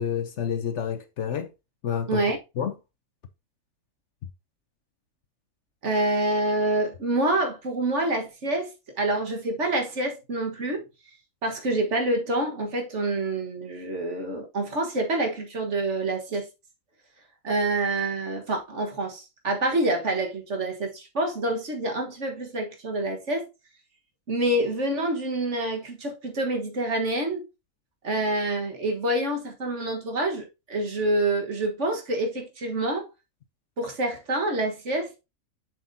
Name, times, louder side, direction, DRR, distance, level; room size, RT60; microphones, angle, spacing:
voice 1, 0.0-1.5 1.8-2.2 2.6-2.7, left 8 dB, 60° left, 0.9 m, -28 dB
voice 2, 5.8-10.8 11.4-16.5 17.4-23.5 24.3-27.4 28.0-33.1 33.8-35.1, right 2 dB, 55° right, 1.8 m, -27 dB
7.3 x 6.4 x 2.7 m
omnidirectional pair, 1.5 m